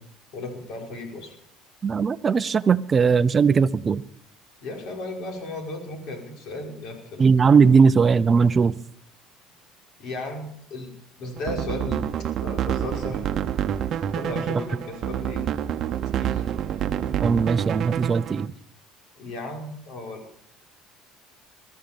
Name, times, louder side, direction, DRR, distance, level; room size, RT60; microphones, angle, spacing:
voice 1, 0.3-1.4 4.6-7.2 10.0-10.9 11.2-12.1 12.4-13.2 14.1-15.4 16.0-16.4 19.2-20.2, left 2 dB, 65° left, 5.6 m, -35 dB
voice 2, 1.8-4.0 7.2-8.7 17.2-18.5, right 5 dB, 30° right, 0.6 m, -19 dB
sound 1, 11.4-18.5, right 10 dB, 50° right, 0.9 m, -28 dB
20.5 x 13.0 x 5.3 m
cardioid pair, 120°, 0 cm